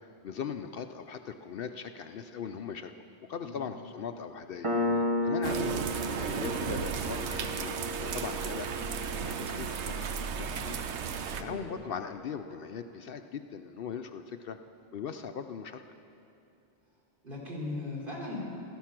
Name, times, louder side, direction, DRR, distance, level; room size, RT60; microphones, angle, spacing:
voice 1, 0.0-2.9 3.3-7.7 8.0-8.7 9.0-10.8 11.4-14.6 14.9-15.8, left 7 dB, 65° left, 8 dB, 0.7 m, -40 dB
Piano, 4.6-11.8, left 1 dB, 30° right, 1.2 m, -35 dB
sound 1, 5.4-11.4, right 6 dB, 85° right, 1.0 m, -34 dB
voice 2, 17.2-18.4, left 2 dB, 50° right, -4 dB, 3.6 m, -38 dB
16.0 x 13.0 x 5.9 m, 2.7 s
omnidirectional pair, 1.1 m